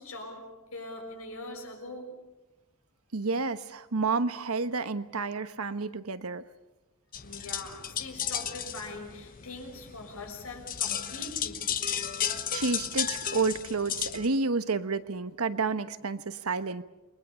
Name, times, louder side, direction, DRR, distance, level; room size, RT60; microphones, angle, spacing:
voice 1, 0.0-2.2 7.2-11.7, left 2 dB, 80° left, 3 dB, 6.3 m, -42 dB
voice 2, 3.1-6.4 12.2-16.8, right 4 dB, 80° right, 11 dB, 1.1 m, -30 dB
sound 1, 7.1-14.3, left 9 dB, 40° left, 1.1 m, -34 dB
28.5 x 22.0 x 6.9 m, 1.0 s
head